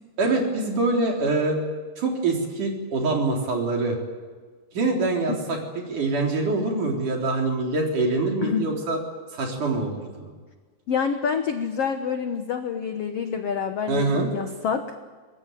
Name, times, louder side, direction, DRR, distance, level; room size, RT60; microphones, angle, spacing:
voice 1, 0.2-1.6 2.0-4.0 4.7-5.6 5.9-9.0 9.3-10.3 13.9-14.3, right 3 dB, 50° right, 1 dB, 5.1 m, -24 dB
voice 2, 8.4-8.7 10.9-14.8, left 6 dB, 75° left, 7 dB, 1.4 m, -27 dB
24.0 x 21.0 x 9.3 m, 1.4 s
omnidirectional pair, 4.6 m